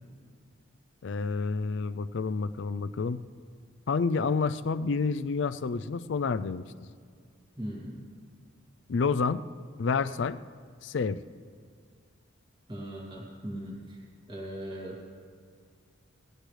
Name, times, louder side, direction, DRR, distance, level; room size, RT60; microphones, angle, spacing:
voice 1, 1.0-3.2 3.9-6.7 8.9-9.4 9.8-10.4 10.8-11.2, left 4 dB, 60° left, 13 dB, 0.4 m, -29 dB
voice 2, 7.6-8.0 12.7-14.0 14.3-15.0, right 1 dB, 25° right, -4 dB, 2.6 m, -39 dB
19.0 x 16.5 x 3.3 m, 2.1 s
head